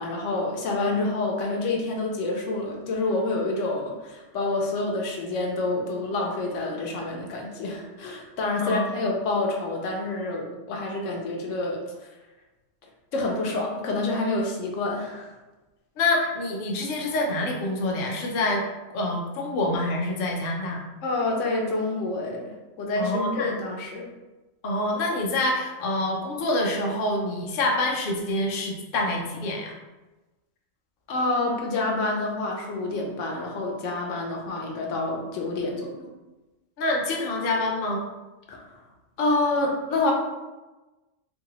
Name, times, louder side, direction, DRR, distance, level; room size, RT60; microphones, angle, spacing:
voice 1, 0.0-11.8 13.1-15.3 21.0-24.1 31.1-36.1 38.5-38.6 39.2-40.1, left 2 dB, 85° left, 0 dB, 1.0 m, -28 dB
voice 2, 8.6-9.1 16.0-18.6 18.9-20.8 23.0-23.5 24.6-29.7 36.8-38.0, left 2 dB, 55° left, -1 dB, 0.7 m, -26 dB
2.7 x 2.7 x 2.9 m, 1.1 s
omnidirectional pair, 1.2 m